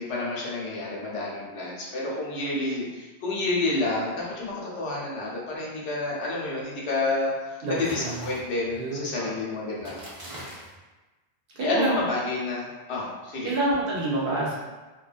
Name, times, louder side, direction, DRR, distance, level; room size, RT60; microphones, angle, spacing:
voice 1, 0.0-10.0 11.6-13.5, left 2 dB, 80° left, -5 dB, 0.9 m, -29 dB
voice 2, 7.6-8.2 8.7-9.3 11.5-12.0 13.4-14.5, right 2 dB, 60° right, -5 dB, 0.9 m, -27 dB
sound 1, 7.7-8.8 9.8-10.8, right 1 dB, 35° right, 0.6 m, -41 dB
2.6 x 2.2 x 2.3 m, 1.2 s
omnidirectional pair, 1.1 m